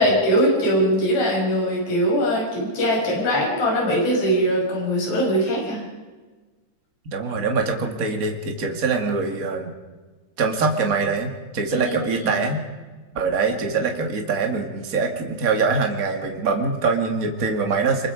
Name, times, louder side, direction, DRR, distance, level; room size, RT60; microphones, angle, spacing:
voice 1, 0.0-5.8 11.8-11.9 12.2-12.4, equal, 35° left, -2 dB, 7.5 m, -21 dB
voice 2, 7.1-9.7 10.4-12.6 13.1-18.1, right 4 dB, 65° right, 4 dB, 0.8 m, -23 dB
25.5 x 22.5 x 5.1 m, 1.3 s
omnidirectional pair, 5.5 m